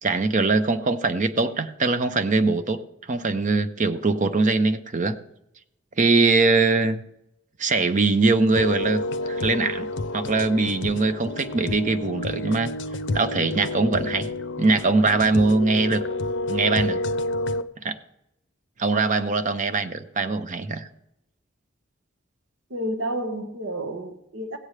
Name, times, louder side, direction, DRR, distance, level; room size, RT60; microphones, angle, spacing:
voice 1, 0.0-2.8 3.1-5.2 6.0-7.0 7.6-9.9 10.1-12.7 13.1-14.3 14.6-16.0 16.5-17.0 17.8-18.0 18.8-20.9, right 3 dB, 40° right, 0.7 m, -22 dB
sound 1, 8.6-17.6, left 2 dB, 65° left, 0.5 m, -29 dB
voice 2, 22.7-24.6, right 1 dB, 75° right, 1.2 m, -30 dB
16.5 x 8.7 x 3.3 m
head